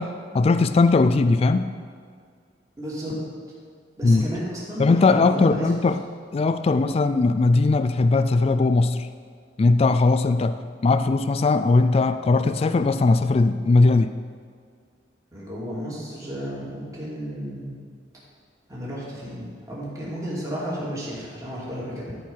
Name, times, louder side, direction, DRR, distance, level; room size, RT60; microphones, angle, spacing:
voice 1, 0.0-1.7 4.0-4.2 4.8-6.0 6.3-9.1 9.6-14.1, left 3 dB, 35° left, 11 dB, 0.3 m, -19 dB
voice 2, 2.8-3.2 4.0-5.9 6.6-6.8 15.3-17.8 18.7-22.2, equal, 20° right, -7 dB, 2.6 m, -33 dB
13.5 x 4.6 x 5.5 m, 2.1 s
head